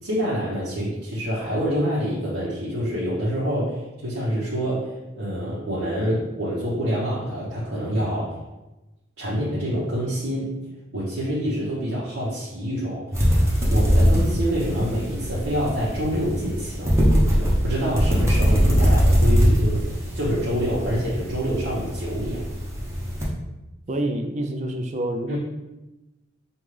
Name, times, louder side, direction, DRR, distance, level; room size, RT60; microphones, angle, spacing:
voice 1, 0.0-4.9 5.2-8.3 9.2-10.5 10.9-13.1 13.7-16.9 17.3-22.4 25.3-25.4, equal, 80° right, -8 dB, 0.9 m, -26 dB
sound 1, 13.1-23.3, equal, 15° right, 0.7 m, -21 dB
voice 2, 23.9-25.4, right 1 dB, 35° right, 4 dB, 0.4 m, -27 dB
5.3 x 2.4 x 3.2 m, 1.0 s
head